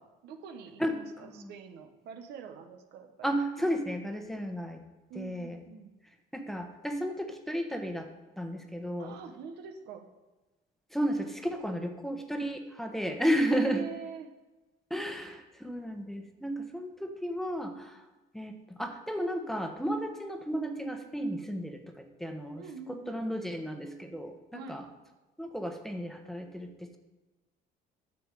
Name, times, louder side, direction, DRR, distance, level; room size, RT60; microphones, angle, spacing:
voice 1, 0.0-3.3 5.1-5.9 9.0-10.1 13.5-14.3 22.6-23.2 24.5-24.8, right 5 dB, 80° right, 6 dB, 1.1 m, -45 dB
voice 2, 3.2-4.8 5.1-5.6 6.3-8.1 8.4-9.1 10.9-13.8 14.9-18.0 18.3-22.6 23.1-24.8 25.4-27.0, equal, ahead, 4 dB, 1.1 m, -33 dB
10.0 x 7.0 x 4.8 m, 1.2 s
cardioid pair, 110°, 17 cm